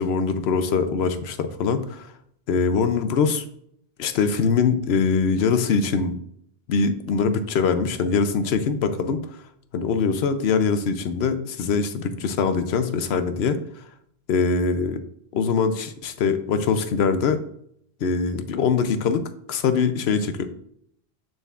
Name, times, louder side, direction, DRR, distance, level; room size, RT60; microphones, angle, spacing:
voice 1, 0.0-2.1 2.5-3.4 4.0-6.1 6.7-9.2 9.7-13.6 14.3-15.0 15.3-17.4 18.0-19.2 19.5-20.5, left 5 dB, 75° left, 10 dB, 0.9 m, -22 dB
6.7 x 6.7 x 2.4 m, 0.69 s
omnidirectional pair, 1.1 m